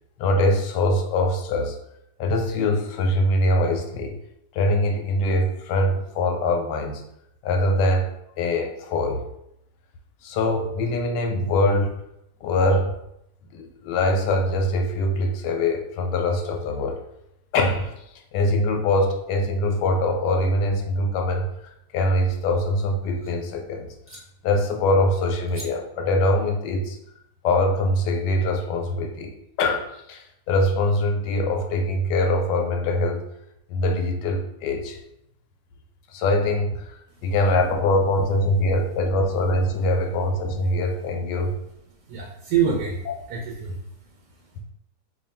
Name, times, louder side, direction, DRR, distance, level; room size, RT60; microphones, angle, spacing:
voice 1, 0.2-1.8 2.2-4.2 4.5-7.0 7.4-8.1 8.4-9.2 10.2-12.0 12.4-12.9 13.5-17.0 17.5-17.9 18.3-21.5 21.9-27.0 27.4-29.3 29.6-33.2 33.7-35.0 36.1-36.9 37.2-41.6 43.1-43.2, left 1 dB, 80° left, 3 dB, 1.2 m, -23 dB
sound 1, 22.3-23.3 24.0-24.2 25.5-25.7, equal, 15° right, 0.4 m, -45 dB
voice 2, 42.1-44.6, right 7 dB, 75° right, -1 dB, 1.1 m, -27 dB
3.1 x 2.4 x 4.2 m, 0.80 s
omnidirectional pair, 1.8 m